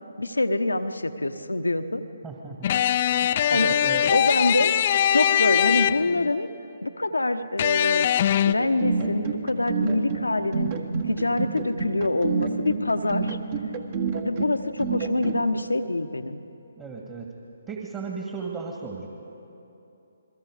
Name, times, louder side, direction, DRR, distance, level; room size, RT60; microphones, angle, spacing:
voice 1, 0.2-2.0 3.5-3.7 4.1-4.7 5.1-6.5 6.8-8.1 8.5-10.7 11.1-13.4 14.2-16.4, left 2 dB, 85° left, 8 dB, 1.1 m, -25 dB
voice 2, 2.2-2.7 3.2-4.1 16.8-17.3 17.7-19.1, right 4 dB, 20° right, 0 dB, 2.0 m, -35 dB
sound 1, 2.6-6.3 7.6-8.5, left 10 dB, 40° left, 0.5 m, -22 dB
sound 2, 8.6-15.4, right 5 dB, 40° right, 1.7 m, -28 dB
29.0 x 22.0 x 5.0 m, 2.9 s
figure-of-eight pair, 140°, 0 cm